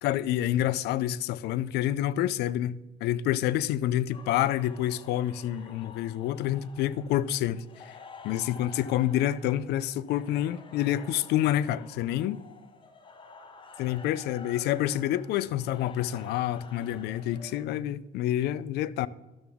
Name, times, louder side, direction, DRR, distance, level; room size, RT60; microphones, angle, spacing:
voice 1, 0.0-7.9 8.2-12.4 13.8-19.1, left 12 dB, 80° left, 0.4 m, -28 dB
sound 1, 4.1-17.7, left 5 dB, 30° left, 1.0 m, -50 dB
12.5 x 7.0 x 3.5 m
cardioid pair, 110°, 17 cm